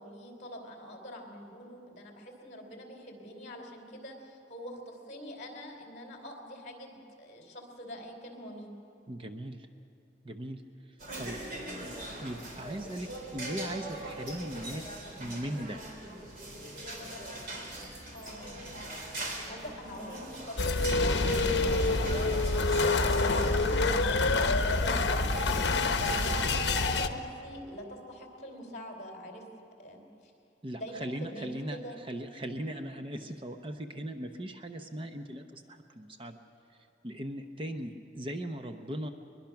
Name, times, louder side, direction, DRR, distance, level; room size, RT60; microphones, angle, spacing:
voice 1, 0.0-8.7 18.1-18.6 19.4-22.3 23.0-23.5 23.8-29.4 29.8-30.3 30.8-32.0, equal, 40° left, 2 dB, 3.4 m, -44 dB
voice 2, 9.1-9.7 10.2-10.6 11.2-11.3 12.2-15.8 30.6-31.8 32.1-36.4 37.0-39.1, right 1 dB, 30° right, 6 dB, 0.7 m, -38 dB
sound 1, 11.0-26.6, right 1 dB, 50° right, 3.4 m, -41 dB
sound 2, 20.6-27.1, left 3 dB, 70° left, 0.9 m, -27 dB
22.0 x 21.5 x 5.9 m, 2.7 s
head